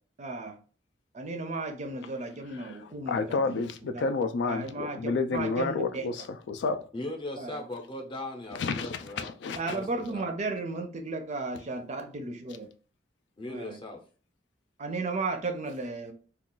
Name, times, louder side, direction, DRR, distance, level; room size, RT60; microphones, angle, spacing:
voice 1, 0.2-0.6 1.1-3.6 3.9-4.1 4.4-6.1 7.4-7.6 9.5-12.7 13.5-13.8 14.8-16.1, right 3 dB, 40° right, 0.5 m, -34 dB
voice 2, 3.1-6.8 8.6-9.8, left 4 dB, 70° left, 0.3 m, -30 dB
voice 3, 6.9-10.3 13.4-14.0, left 1 dB, 30° left, 0.6 m, -39 dB
2.4 x 2.3 x 3.7 m
head